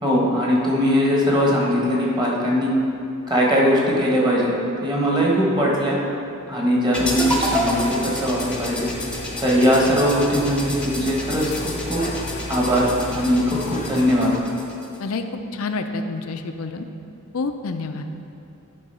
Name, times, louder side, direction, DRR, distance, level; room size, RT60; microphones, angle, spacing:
voice 1, 0.0-2.7 3.3-4.5 4.8-6.0 6.5-8.9 9.4-12.0 12.5-14.3, equal, 20° right, -4 dB, 1.5 m, -20 dB
sound 1, 6.9-14.4, left 2 dB, 35° left, 0.6 m, -33 dB
sound 2, 6.9-15.0, left 1 dB, 5° left, 0.9 m, -30 dB
voice 2, 15.5-16.8 17.3-18.1, left 3 dB, 80° left, 7 dB, 0.6 m, -28 dB
11.0 x 3.9 x 5.5 m, 2.7 s
head